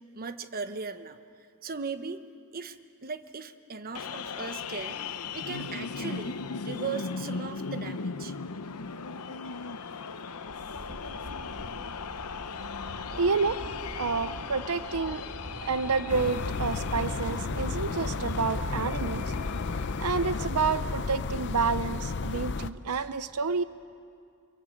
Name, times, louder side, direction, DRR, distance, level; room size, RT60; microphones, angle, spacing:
voice 1, 0.1-1.2 1.6-2.2 2.5-2.8 3.0-5.0 5.3-6.4 6.6-8.3, right 5 dB, 40° right, 10 dB, 1.0 m, -37 dB
sound 1, 4.0-20.5, left 5 dB, 90° left, 0.9 m, -38 dB
sound 2, 10.4-19.2, equal, 65° right, 2.3 m, -42 dB
voice 2, 12.9-13.6 14.0-15.2 15.6-19.2 20.0-23.6, right 5 dB, 85° right, 13 dB, 0.7 m, -29 dB
sound 3, 16.1-22.7, left 4 dB, 55° left, 0.6 m, -33 dB
27.0 x 23.5 x 8.5 m, 2.3 s
head